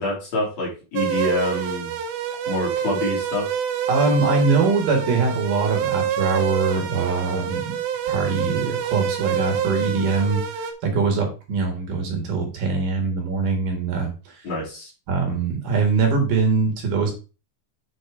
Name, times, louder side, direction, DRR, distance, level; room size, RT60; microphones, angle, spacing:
voice 1, 0.0-1.9 2.5-3.4 14.4-14.9, left 1 dB, 45° left, -3 dB, 4.2 m, -26 dB
sound 1, 1.0-10.7, right 9 dB, 85° right, 2.9 m, -27 dB
voice 2, 3.9-7.8 8.1-14.4 15.1-17.1, right 4 dB, 65° right, 3 dB, 3.2 m, -23 dB
8.4 x 4.4 x 4.7 m, 0.32 s
omnidirectional pair, 4.2 m